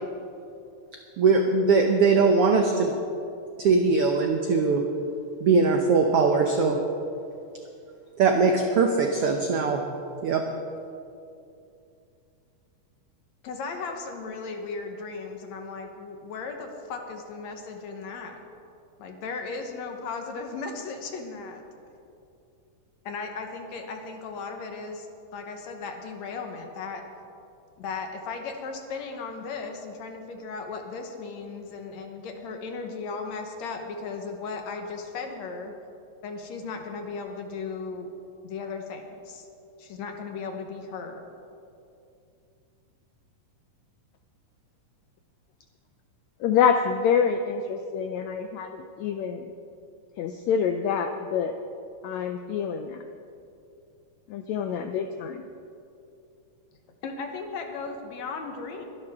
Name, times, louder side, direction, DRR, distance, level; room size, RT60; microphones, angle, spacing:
voice 1, 1.2-2.9 3.6-4.8 5.4-6.8 8.2-9.8 10.2-10.4, right 4 dB, 80° right, 3 dB, 1.3 m, -21 dB
voice 2, 13.4-18.4 19.0-21.6 23.1-25.1 25.3-27.0 27.8-35.7 36.2-38.1 38.4-39.5 39.8-41.2 57.0-58.8, left 4 dB, 65° left, 4 dB, 2.2 m, -36 dB
voice 3, 46.4-49.5 50.2-51.5 52.0-53.1 54.3-55.5, left 7 dB, 80° left, 7 dB, 1.6 m, -26 dB
23.0 x 11.5 x 3.6 m, 2.6 s
omnidirectional pair, 3.7 m